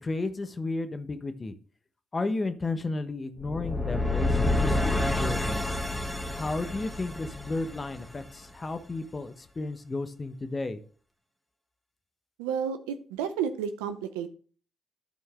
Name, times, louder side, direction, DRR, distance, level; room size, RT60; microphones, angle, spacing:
voice 1, 0.0-1.5 2.1-5.6 6.3-10.8, left 2 dB, 35° left, 9 dB, 1.1 m, -33 dB
sound 1, 3.4-8.4, left 2 dB, 5° left, 1.7 m, -28 dB
voice 2, 12.4-14.3, right 7 dB, 90° right, 10 dB, 0.6 m, -31 dB
11.5 x 4.4 x 3.6 m, 0.41 s
hypercardioid pair, 45°, 0 cm